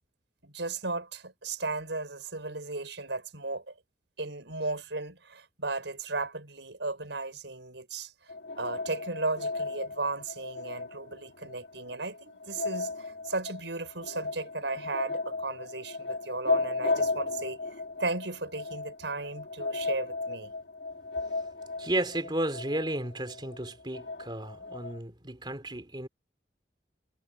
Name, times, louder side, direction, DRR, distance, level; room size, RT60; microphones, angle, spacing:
voice 1, 0.4-3.7 4.2-8.1 8.6-17.6 18.0-20.5, right 3 dB, 85° right, 5.8 m, -35 dB
sound 1, 8.3-25.0, left 3 dB, 90° left, 1.4 m, -35 dB
voice 2, 21.8-26.1, right 1 dB, 25° right, 3.2 m, -33 dB
head